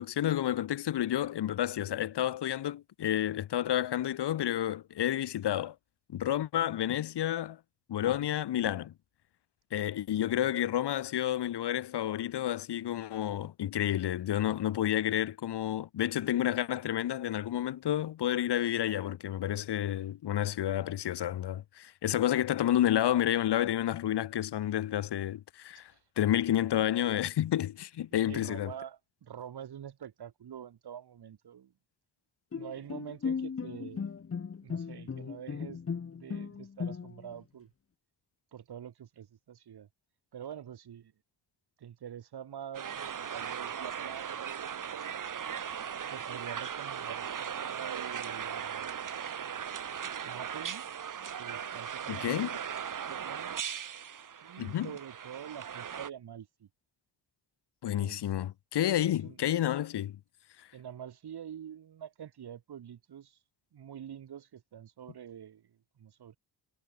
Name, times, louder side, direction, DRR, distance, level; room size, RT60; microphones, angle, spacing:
voice 1, 0.0-5.7 6.1-7.6 7.9-8.9 9.7-25.9 26.2-28.7 52.1-52.5 54.6-54.9 57.8-60.2, left 12 dB, 75° left, 1.2 m, -30 dB
voice 2, 10.1-10.5 25.7-26.0 28.2-31.7 32.5-34.1 34.6-35.8 36.2-37.7 38.5-39.9 40.3-41.1 41.8-45.2 46.1-48.9 50.2-50.8 51.4-52.6 53.1-53.6 54.4-56.7 57.9-58.3 59.0-59.4 60.7-63.4 63.7-66.4, right 9 dB, 65° right, 5.1 m, -46 dB
Bowed string instrument, 32.5-37.4, left 6 dB, 35° left, 1.7 m, -37 dB
sound 1, 42.7-56.1, right 8 dB, 50° right, 2.2 m, -38 dB
wide cardioid pair, 165°, 41 cm